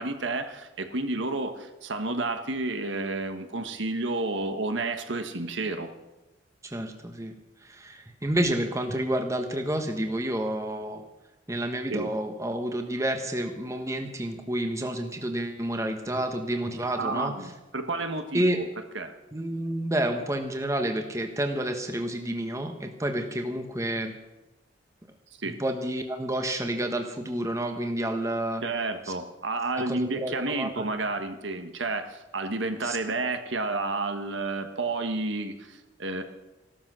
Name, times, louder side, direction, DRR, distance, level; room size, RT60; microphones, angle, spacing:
voice 1, 0.0-5.9 11.9-12.1 17.0-18.7 18.9-19.1 25.4-25.6 28.6-36.2, right 2 dB, 70° right, 7 dB, 1.5 m, -31 dB
voice 2, 6.6-7.3 7.6-11.0 11.5-17.3 18.3-18.6 19.3-24.1 25.4-28.6 29.7-30.9 32.8-33.0, right 1 dB, 15° right, 5 dB, 1.2 m, -29 dB
16.0 x 12.5 x 6.3 m, 1.0 s
head